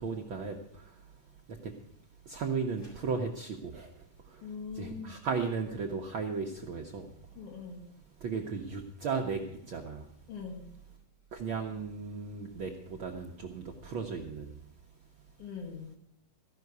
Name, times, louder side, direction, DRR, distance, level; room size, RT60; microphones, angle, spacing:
voice 1, 0.0-1.7 2.2-4.5 4.7-7.4 8.2-10.1 11.3-14.9, right 5 dB, 70° right, 2 dB, 1.2 m, -36 dB
sound 1, 2.7-3.2, right 1 dB, 45° left, 5.5 m, -59 dB
voice 2, 4.4-5.2 7.4-7.9 10.3-10.6 15.4-15.9, left 5 dB, 80° left, 1 dB, 3.9 m, -42 dB
15.0 x 5.8 x 9.3 m, 0.71 s
omnidirectional pair, 3.5 m